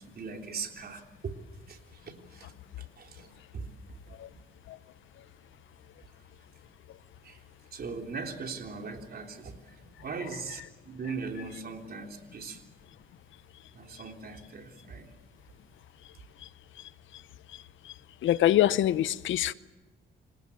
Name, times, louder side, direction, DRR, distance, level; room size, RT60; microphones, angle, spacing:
voice 1, 0.0-1.4 1.7-3.7 4.3-4.4 7.2-7.4 7.7-12.7 13.7-15.1, right 4 dB, 50° right, 3.5 m, -40 dB
voice 2, 18.2-19.5, left 13 dB, 75° left, 0.7 m, -24 dB
27.0 x 18.0 x 8.7 m
cardioid pair, 90°, 20 cm